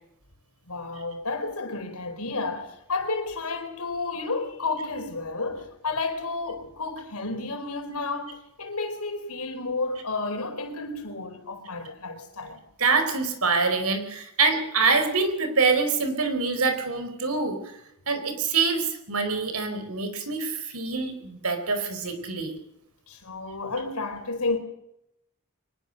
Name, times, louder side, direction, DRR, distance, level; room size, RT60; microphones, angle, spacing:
voice 1, 0.7-12.6 23.1-24.6, left 3 dB, 80° left, 4.4 m, -31 dB
voice 2, 12.8-17.6 18.1-22.5, right 4 dB, 75° right, 4.6 m, -25 dB
23.5 x 21.0 x 6.6 m
head